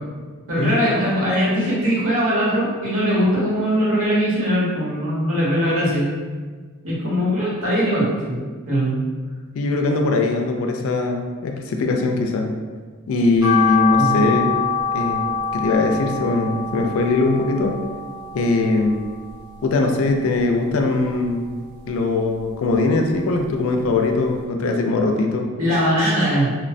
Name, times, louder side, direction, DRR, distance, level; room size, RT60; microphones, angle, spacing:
voice 1, 0.5-6.0 6.8-9.0 13.9-14.2 25.6-26.5, equal, 65° right, -8 dB, 1.0 m, -21 dB
voice 2, 9.5-12.5 13.1-14.5 14.9-17.8 18.3-19.0 19.6-21.4 21.9-25.5, left 3 dB, 65° left, 3 dB, 0.3 m, -21 dB
sound 1, 13.4-19.7 20.1-21.2 21.6-23.0 23.4-23.5 23.9-24.0 24.3-24.4, left 6 dB, 15° right, 0.7 m, -25 dB
3.0 x 2.0 x 2.5 m, 1.5 s
head